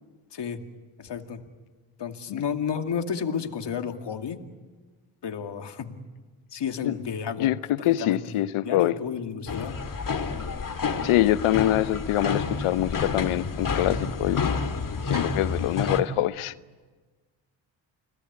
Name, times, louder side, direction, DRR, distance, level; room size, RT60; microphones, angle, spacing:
voice 1, 0.3-0.6 1.0-1.4 2.0-4.4 5.2-6.0 6.5-7.5 7.8-9.8, left 7 dB, 55° left, 2.4 m, -32 dB
voice 2, 7.4-9.0 11.0-14.5 15.1-16.5, left 14 dB, 80° left, 1.0 m, -24 dB
sound 1, 9.5-16.0, left 5 dB, 40° left, 2.5 m, -29 dB
30.0 x 19.5 x 9.6 m
supercardioid pair, 60°, 50 cm